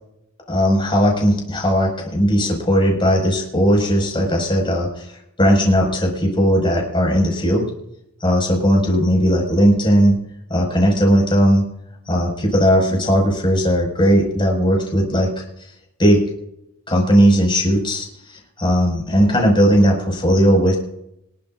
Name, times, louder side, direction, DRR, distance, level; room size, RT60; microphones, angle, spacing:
voice 1, 0.5-7.7 8.2-10.2 10.5-11.6 12.1-15.4 16.0-16.2 16.9-20.8, equal, 25° left, 0 dB, 5.7 m, -17 dB
26.0 x 12.0 x 2.6 m, 0.77 s
head